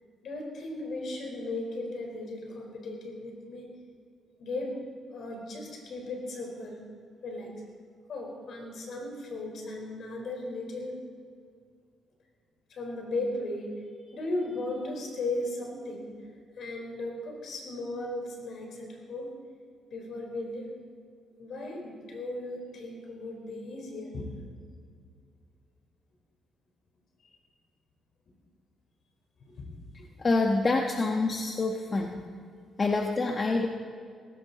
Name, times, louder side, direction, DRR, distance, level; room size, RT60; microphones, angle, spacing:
voice 1, 0.2-3.7 4.4-4.8 5.1-6.8 7.2-7.5 8.1-11.0 12.7-13.7 14.1-16.1 16.6-19.3 19.9-20.7 21.4-24.3 29.4-29.7 32.8-32.9, left 2 dB, 60° left, 1 dB, 4.6 m, -36 dB
voice 2, 30.2-32.2 32.8-33.7, left 3 dB, 35° left, 2 dB, 1.2 m, -26 dB
18.5 x 16.5 x 4.2 m, 2.2 s
cardioid pair, 90°, 0 cm